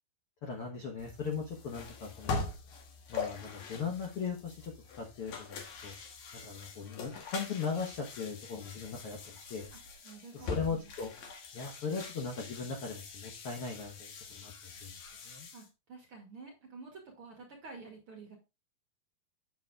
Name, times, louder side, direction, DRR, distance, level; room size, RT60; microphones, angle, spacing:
voice 1, 0.4-2.5 3.1-4.7 5.0-5.9 6.3-9.7 10.3-11.1 11.5-14.9 15.2-15.5, left 5 dB, 75° left, 1 dB, 1.2 m, -38 dB
sound 1, 1.0-15.7, left 4 dB, 60° left, 2.3 m, -43 dB
voice 2, 10.0-10.9 15.5-18.4, right 4 dB, 50° right, 1 dB, 1.8 m, -50 dB
8.6 x 7.2 x 2.4 m, 0.27 s
omnidirectional pair, 4.5 m